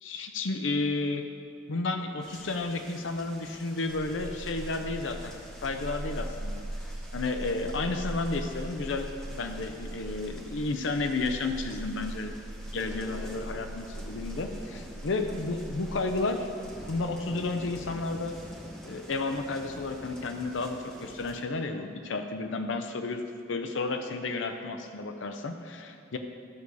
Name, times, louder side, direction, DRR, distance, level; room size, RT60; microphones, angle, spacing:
voice 1, 0.0-1.3 1.7-5.3 5.6-6.6 7.1-12.4 12.7-16.5 16.9-18.3 18.9-23.2 23.5-26.2, left 3 dB, 85° left, 6 dB, 0.6 m, -32 dB
sound 1, 2.2-21.3, equal, 5° left, 1.1 m, -48 dB
sound 2, 3.9-17.1, right 1 dB, 85° right, 0.7 m, -40 dB
12.0 x 4.8 x 6.9 m, 2.3 s
head